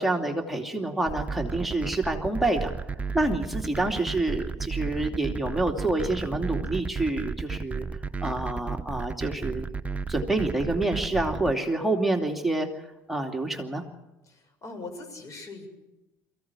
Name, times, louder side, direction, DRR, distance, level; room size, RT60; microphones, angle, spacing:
voice 1, 0.0-2.7 3.1-7.9 8.2-9.7 10.1-13.8, right 2 dB, ahead, 2 dB, 2.7 m, -27 dB
sound 1, 1.1-11.5, right 4 dB, 20° right, 1.0 m, -33 dB
voice 2, 14.3-15.7, left 3 dB, 45° left, 6 dB, 6.9 m, -41 dB
23.5 x 16.0 x 9.8 m, 1.0 s
hypercardioid pair, 75°, 8 cm